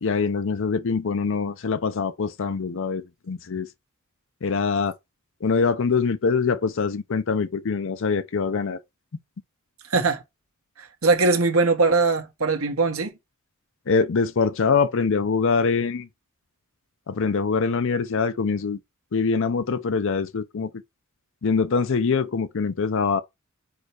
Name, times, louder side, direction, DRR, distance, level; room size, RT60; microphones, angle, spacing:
voice 1, 0.0-3.7 4.4-5.0 5.4-8.8 13.9-16.1 17.1-18.8 19.1-20.7 21.4-23.2, left 5 dB, 65° left, 0.5 m, -24 dB
voice 2, 9.9-10.2 10.8-13.1, right 3 dB, 80° right, 1.5 m, -21 dB
4.8 x 4.5 x 4.8 m
head